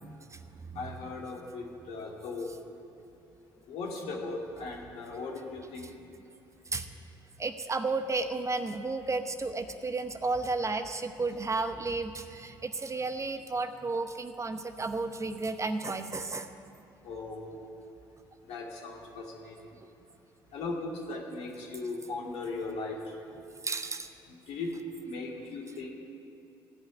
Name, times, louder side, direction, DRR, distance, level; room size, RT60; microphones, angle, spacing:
voice 1, 0.0-0.4 0.7-0.8 6.7-6.9 7.4-16.5 23.6-24.1, right 3 dB, 25° right, 8 dB, 0.8 m, -33 dB
voice 2, 0.8-2.5 3.7-5.9 17.0-17.7 18.5-19.5 20.5-23.0 24.5-24.7 25.1-25.9, left 3 dB, 65° left, -2 dB, 2.6 m, -38 dB
16.0 x 5.6 x 9.7 m, 2.8 s
hypercardioid pair, 55°, 11 cm